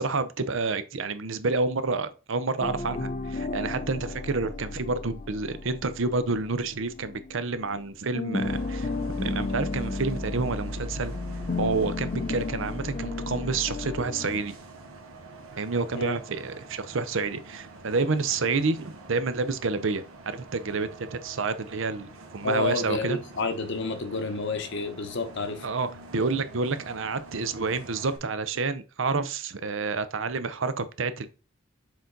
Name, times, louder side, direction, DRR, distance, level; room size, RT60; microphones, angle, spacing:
voice 1, 0.0-8.9 9.2-11.2 11.6-14.5 15.6-23.2 25.6-31.3, right 4 dB, 65° right, 0.7 m, -29 dB
sound 1, 2.6-7.8 8.1-14.4, left 3 dB, 35° left, 0.6 m, -33 dB
Bus, 8.3-28.2, right 2 dB, 85° right, 1.4 m, -46 dB
voice 2, 22.4-25.7, left 3 dB, 60° left, 1.0 m, -30 dB
6.8 x 3.9 x 3.9 m
head